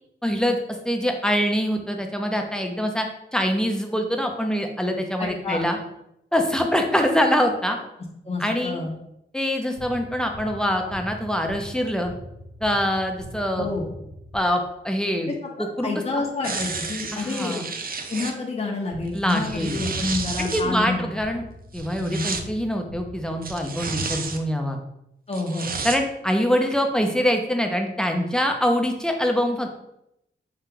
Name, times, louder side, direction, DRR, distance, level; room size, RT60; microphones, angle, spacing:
voice 1, 0.2-0.6 0.8-3.1 3.3-5.8 6.3-7.8 8.4-8.8 9.3-12.1 12.6-13.7 14.3-15.3 15.6-15.9 17.1-17.6 19.1-19.8 20.4-21.4 21.7-24.8 25.8-29.7, equal, 5° left, 3 dB, 0.7 m, -24 dB
voice 2, 5.2-5.7 8.2-8.9 13.6-13.9 15.8-17.6 18.1-21.1 22.0-22.2 25.3-25.7, left 3 dB, 30° left, -1 dB, 0.8 m, -28 dB
sound 1, 9.8-14.9 18.9-24.1, left 1 dB, 80° left, 1.1 m, -42 dB
sound 2, 16.4-18.3 19.1-20.6 21.7-22.4 23.4-24.4 25.3-26.0 26.6-26.7, right 4 dB, 50° right, 0.5 m, -31 dB
5.7 x 2.4 x 3.7 m, 0.82 s
wide cardioid pair, 85°, 20 cm